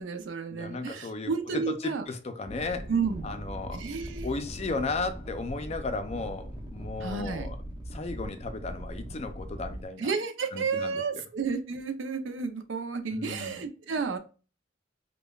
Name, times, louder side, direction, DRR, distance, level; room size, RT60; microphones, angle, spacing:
voice 1, 0.0-2.0 2.9-3.3 3.7-4.3 7.0-7.5 10.0-14.2, right 5 dB, 75° right, 0.5 m, -31 dB
voice 2, 0.5-2.9 3.2-3.8 4.2-7.6 7.9-10.1 10.5-11.2 13.1-13.6, left 3 dB, 35° left, 0.4 m, -35 dB
sound 1, 2.5-9.8, equal, 25° right, 0.6 m, -40 dB
5.2 x 2.2 x 2.2 m
head